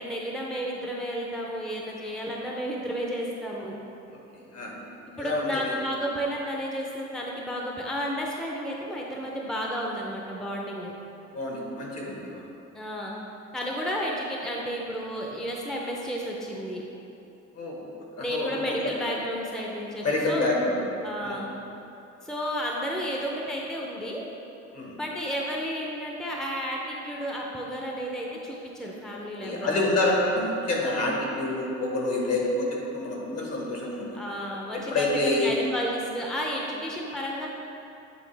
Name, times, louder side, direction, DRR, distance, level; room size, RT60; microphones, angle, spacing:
voice 1, 0.0-3.8 5.2-10.9 12.7-13.1 13.5-16.8 18.2-20.4 21.0-21.5 22.2-24.2 25.0-29.7 34.1-37.5, equal, ahead, -2 dB, 0.6 m, -32 dB
voice 2, 4.1-4.8 5.2-5.7 11.3-12.4 17.5-17.9 18.1-18.9 20.0-20.8 21.2-21.4 24.7-24.9 29.4-34.2 34.7-35.5, left 2 dB, 55° left, -2 dB, 1.4 m, -28 dB
8.5 x 3.6 x 3.3 m, 2.9 s
cardioid pair, 90°, 30 cm